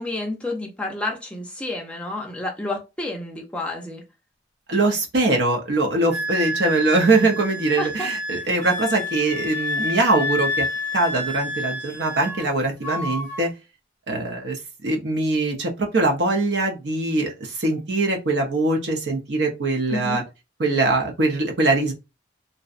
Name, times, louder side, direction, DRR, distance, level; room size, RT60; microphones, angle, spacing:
voice 1, 0.0-4.0 7.8-8.1 19.9-20.2, left 2 dB, 5° left, 0.5 m, -30 dB
voice 2, 4.7-10.7 10.9-13.5 14.1-20.2 20.6-21.9, right 2 dB, 70° right, 0.7 m, -22 dB
Wind instrument woodwind instrument, 6.1-12.5 12.8-13.4, left 1 dB, 15° right, 1.1 m, -29 dB
2.6 x 2.1 x 2.4 m
head